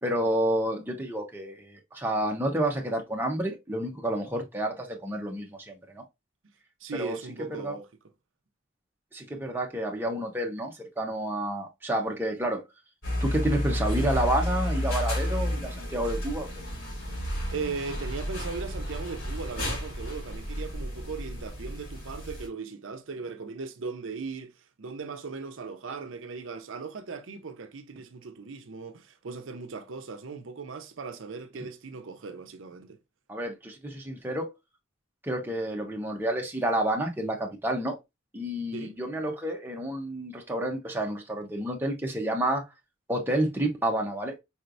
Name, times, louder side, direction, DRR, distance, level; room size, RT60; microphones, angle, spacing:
voice 1, 0.0-6.0 6.9-7.2 7.5-7.8 9.1-12.6 13.2-16.5 33.3-34.5 35.2-38.0 38.3-42.6 43.1-44.4, right 1 dB, 10° right, 1.0 m, -29 dB
voice 2, 6.8-7.9 17.5-33.0 38.7-39.0, right 4 dB, 80° right, 0.6 m, -38 dB
sound 1, 13.0-22.5, left 1 dB, 90° left, 3.2 m, -31 dB
5.0 x 3.2 x 2.6 m
head